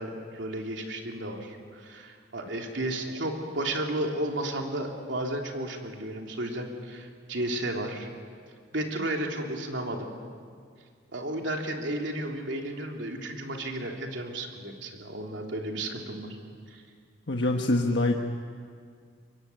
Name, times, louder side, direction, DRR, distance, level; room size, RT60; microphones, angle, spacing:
voice 1, 0.0-8.1 8.7-10.1 11.1-16.3 16.7-16.8, right 1 dB, 70° right, 2 dB, 3.2 m, -33 dB
voice 2, 17.3-18.2, left 2 dB, 65° left, 2 dB, 1.3 m, -24 dB
23.5 x 23.0 x 9.5 m, 2.1 s
head